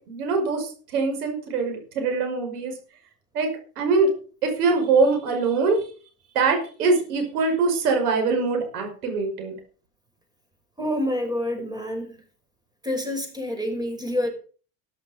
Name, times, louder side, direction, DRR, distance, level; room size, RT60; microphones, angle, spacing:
voice 1, 0.1-2.7 3.3-4.1 4.4-5.8 6.3-9.6, right 4 dB, 90° right, 5 dB, 5.8 m, -23 dB
voice 2, 10.8-12.2 12.8-14.3, left 1 dB, 10° right, 5 dB, 5.6 m, -27 dB
13.5 x 11.0 x 5.3 m, 0.39 s
supercardioid pair, 90°, 44 cm